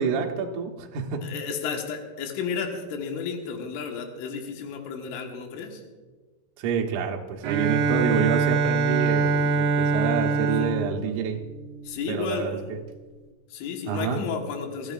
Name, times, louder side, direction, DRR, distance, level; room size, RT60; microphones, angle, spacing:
voice 1, 0.0-1.2 6.6-11.4 12.1-12.6 13.9-14.2, right 6 dB, 85° right, 1 dB, 1.7 m, -28 dB
voice 2, 1.2-5.8 10.6-10.8 11.9-12.7 13.5-14.9, left 6 dB, 80° left, 2 dB, 3.9 m, -32 dB
Bowed string instrument, 7.4-12.2, right 4 dB, 65° right, 2.2 m, -24 dB
25.0 x 14.0 x 2.5 m, 1.3 s
omnidirectional pair, 5.5 m